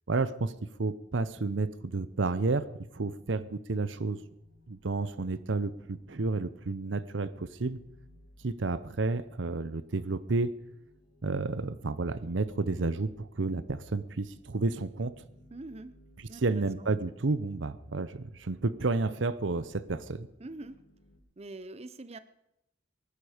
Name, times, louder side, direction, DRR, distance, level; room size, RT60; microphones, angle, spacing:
voice 1, 0.1-0.5 0.8-2.6 2.9-4.2 4.7-7.8 8.4-10.5 11.2-15.1 16.4-20.3, right 3 dB, 85° right, 16 dB, 0.8 m, -31 dB
sound 1, 2.0-21.2, equal, 90° left, 4.3 m, -62 dB
voice 2, 15.5-16.0 16.3-17.0 20.4-20.8 21.4-22.2, right 2 dB, 35° right, 14 dB, 0.7 m, -44 dB
21.0 x 11.5 x 5.1 m, 0.82 s
head